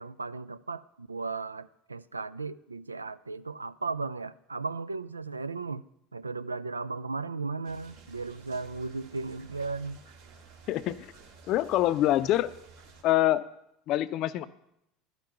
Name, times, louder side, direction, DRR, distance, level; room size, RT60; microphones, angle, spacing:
voice 1, 0.0-5.8 6.1-10.0, right 4 dB, 85° right, 0.3 m, -36 dB
sound 1, 7.6-13.0, right 4 dB, 65° right, 2.1 m, -53 dB
voice 2, 10.7-11.1 11.5-12.5 13.0-13.4 13.9-14.5, left 14 dB, 50° left, 0.5 m, -25 dB
12.0 x 5.6 x 8.0 m
figure-of-eight pair, 70°, 0 cm